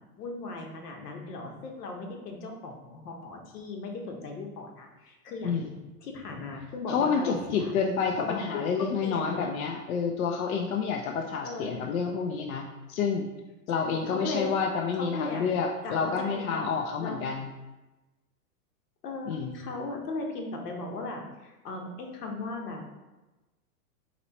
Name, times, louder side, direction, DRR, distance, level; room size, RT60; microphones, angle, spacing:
voice 1, 0.2-5.6 6.0-7.7 8.2-9.6 11.4-11.8 13.7-14.5 14.9-15.5 15.8-16.7 17.0-17.2 19.0-22.9, left 3 dB, 90° left, 2 dB, 1.2 m, -37 dB
voice 2, 5.4-5.8 6.9-13.3 13.7-17.5 19.3-19.6, left 5 dB, 65° left, 2 dB, 0.6 m, -29 dB
4.2 x 3.0 x 4.1 m, 1.1 s
supercardioid pair, 175°, 46 cm